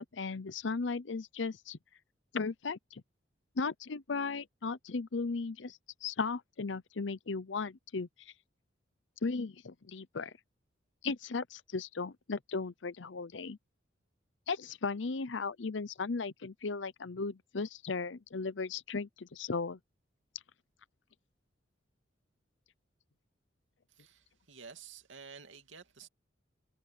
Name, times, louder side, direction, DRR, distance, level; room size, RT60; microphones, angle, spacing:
voice 1, 0.0-1.8 2.3-3.0 3.6-8.1 9.2-10.3 11.0-13.6 14.5-19.8, left 4 dB, 75° left, 0.7 m, -36 dB
voice 2, 23.9-26.1, right 6 dB, 85° right, 2.6 m, -51 dB
head